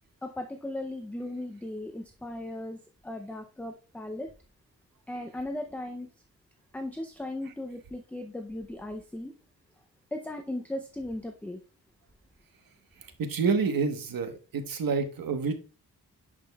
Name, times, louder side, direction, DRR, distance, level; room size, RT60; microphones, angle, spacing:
voice 1, 0.2-2.8 3.0-4.3 5.1-6.1 6.7-9.3 10.1-11.6, left 1 dB, 5° left, 5 dB, 0.5 m, -37 dB
voice 2, 13.2-15.5, right 5 dB, 85° right, 7 dB, 1.1 m, -28 dB
10.5 x 5.1 x 2.3 m, 0.34 s
wide cardioid pair, 135°, 34 cm